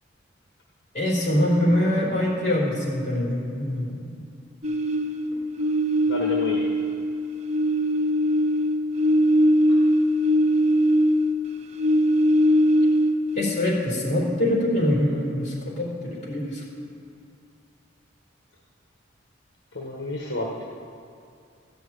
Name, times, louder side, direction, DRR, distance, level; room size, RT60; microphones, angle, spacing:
voice 1, 0.9-4.2 13.3-16.6, left 1 dB, 40° left, -5 dB, 3.4 m, -24 dB
sound 1, 4.6-7.1 7.4-11.4 11.7-13.4, equal, 35° right, 0.7 m, -21 dB
voice 2, 6.1-6.7 9.7-9.8 19.7-20.6, left 2 dB, 60° left, -2 dB, 1.2 m, -31 dB
14.0 x 6.0 x 8.6 m, 2.4 s
head